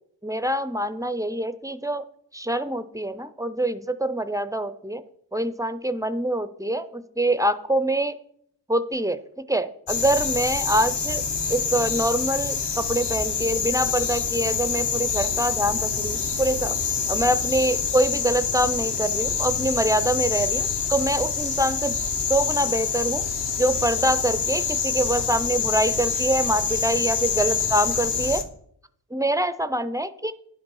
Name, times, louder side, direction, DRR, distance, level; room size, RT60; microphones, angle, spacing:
voice 1, 0.2-2.1 2.3-5.0 5.3-8.2 8.7-9.2 9.5-11.2 11.5-16.8 17.1-23.2 23.6-28.4 29.1-30.3, right 1 dB, 10° right, 12 dB, 0.4 m, -25 dB
sound 1, 9.9-28.4, left 6 dB, 65° left, 1.1 m, -26 dB
10.5 x 5.3 x 5.4 m, 0.69 s
wide cardioid pair, 130°, 44 cm